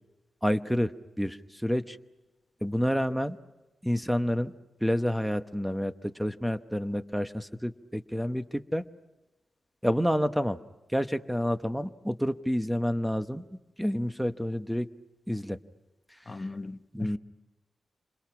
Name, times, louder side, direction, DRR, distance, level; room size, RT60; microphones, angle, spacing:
voice 1, 0.4-0.9 1.2-2.0 2.6-3.4 3.8-4.5 4.8-8.8 9.8-10.6 10.9-13.5 13.8-14.9 15.3-15.6 16.9-17.2, equal, ahead, 0.9 m, -29 dB
voice 2, 16.3-17.2, left 3 dB, 25° left, 0.8 m, -38 dB
29.0 x 27.0 x 6.0 m
wide cardioid pair, 170°, 0 cm